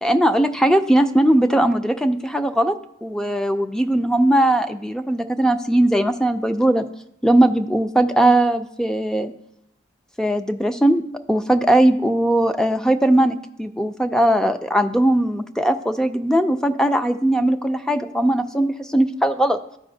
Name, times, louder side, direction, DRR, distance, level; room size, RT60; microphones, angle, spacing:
voice 1, 0.0-2.8 3.0-6.8 7.2-9.3 10.2-11.0 11.3-19.6, right 1 dB, 5° left, 8 dB, 0.3 m, -19 dB
13.5 x 4.9 x 2.7 m, 0.78 s
head